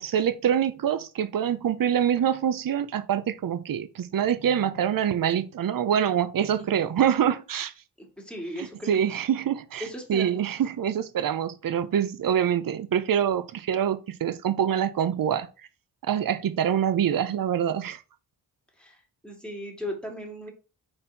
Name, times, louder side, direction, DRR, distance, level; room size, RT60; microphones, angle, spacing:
voice 1, 0.0-7.7 8.6-15.5 16.1-18.0, right 9 dB, 50° right, 0.7 m, -25 dB
voice 2, 6.5-6.9 8.0-9.2 9.8-10.4 18.8-20.5, equal, ahead, 2.4 m, -38 dB
5.5 x 4.4 x 4.1 m
cardioid pair, 90°, 42 cm